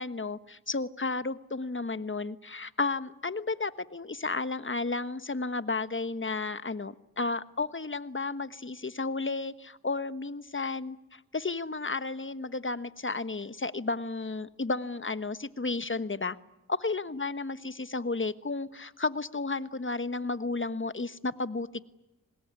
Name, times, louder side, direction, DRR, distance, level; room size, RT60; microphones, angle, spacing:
voice 1, 0.0-16.4 16.7-21.8, left 3 dB, 35° left, 13 dB, 1.3 m, -33 dB
25.5 x 20.5 x 9.7 m, 0.98 s
cardioid pair, 45°, 36 cm